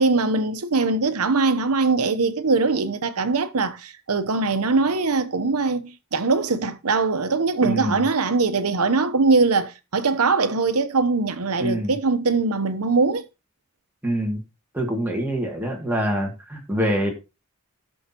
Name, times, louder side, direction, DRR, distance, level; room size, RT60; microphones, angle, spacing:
voice 1, 0.0-13.2, right 3 dB, 85° right, 0.9 m, -22 dB
voice 2, 7.6-8.0 11.6-11.9 14.0-14.4 14.7-17.1, right 1 dB, 10° right, 2.3 m, -25 dB
17.0 x 6.4 x 3.0 m
head